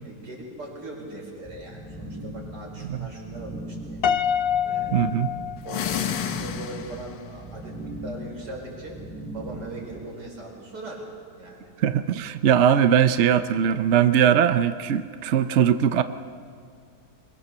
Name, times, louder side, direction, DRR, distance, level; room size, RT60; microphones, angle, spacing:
voice 1, 0.0-4.4 4.6-5.2 5.6-9.0 9.3-11.1 11.4-11.7, right 1 dB, 75° right, -1 dB, 5.5 m, -40 dB
sound 1, 1.4-10.0, right 1 dB, 5° left, 6.1 m, -39 dB
Piano, 4.0-6.3, left 8 dB, 55° left, 0.6 m, -26 dB
voice 2, 4.9-5.3 11.8-16.0, right 9 dB, 55° right, 11 dB, 0.8 m, -20 dB
sound 2, 5.6-7.2, left 9 dB, 80° left, 1.6 m, -30 dB
24.0 x 22.5 x 6.9 m, 2.2 s
omnidirectional pair, 1.8 m